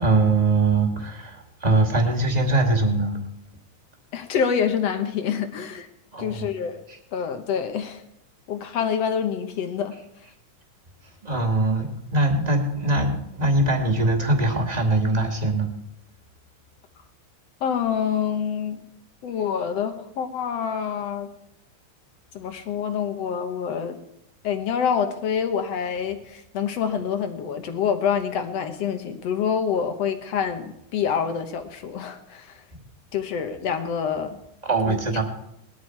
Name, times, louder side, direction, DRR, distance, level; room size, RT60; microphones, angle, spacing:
voice 1, 0.0-3.2 6.1-6.5 11.2-15.7 34.6-35.2, right 2 dB, 15° right, 3 dB, 1.7 m, -22 dB
voice 2, 4.1-5.9 6.2-6.8 7.1-8.0 8.5-10.0 17.6-18.8 19.2-21.3 22.3-24.0 24.4-32.6 33.1-34.4 34.9-35.0, left 7 dB, 60° left, 7 dB, 2.0 m, -26 dB
19.5 x 13.5 x 4.6 m, 0.80 s
omnidirectional pair, 3.6 m